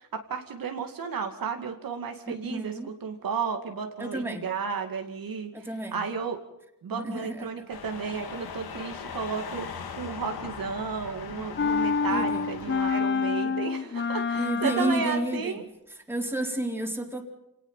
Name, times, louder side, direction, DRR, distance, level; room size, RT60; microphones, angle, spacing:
voice 1, 0.0-6.4 6.8-9.7 10.0-15.6, right 6 dB, 70° right, 4 dB, 2.5 m, -33 dB
voice 2, 2.3-2.9 4.0-4.4 5.5-6.0 6.9-7.6 12.1-12.4 14.3-15.6 16.1-17.2, right 1 dB, 5° right, 2 dB, 4.0 m, -31 dB
sound 1, 7.7-13.0, left 6 dB, 85° left, 2.6 m, -39 dB
sound 2, 11.6-15.5, left 5 dB, 30° left, 0.8 m, -27 dB
28.0 x 19.0 x 5.8 m, 0.84 s
cardioid pair, 95°, 36 cm